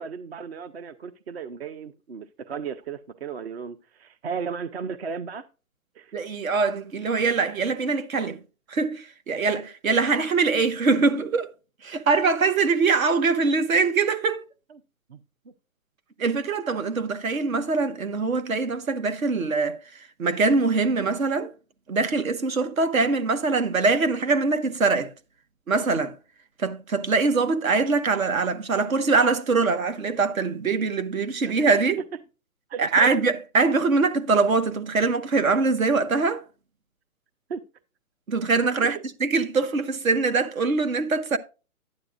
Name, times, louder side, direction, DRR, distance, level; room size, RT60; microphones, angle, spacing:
voice 1, 0.0-5.5 5.9-6.1 9.3-9.4 14.7-14.8 15.1-15.2 31.4-31.8 32.7-33.1 37.5-37.6 38.8-39.0, right 6 dB, 45° right, 0.7 m, -35 dB
voice 2, 6.1-8.4 8.7-11.5 11.8-14.4 16.2-19.8 20.2-21.5 21.9-25.1 25.7-26.2 26.6-32.0 32.8-36.4 38.3-41.4, right 4 dB, 70° right, 1.4 m, -23 dB
12.0 x 9.6 x 2.4 m
hypercardioid pair, 160°, 43 cm